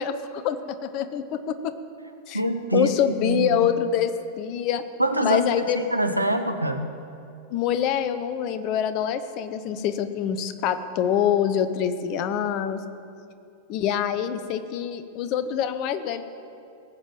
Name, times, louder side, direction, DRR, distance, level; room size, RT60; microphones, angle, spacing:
voice 1, 0.0-1.7 2.3-2.4 2.7-4.1 4.4-4.8 5.2-5.8 7.5-12.8 13.7-16.2, left 9 dB, 40° left, 11 dB, 0.8 m, -25 dB
voice 2, 2.3-2.9 3.2-3.7 5.0-5.4 5.8-6.9, right 1 dB, 85° right, 7 dB, 0.9 m, -24 dB
18.5 x 7.4 x 7.2 m, 2.5 s
figure-of-eight pair, 90°, 0 cm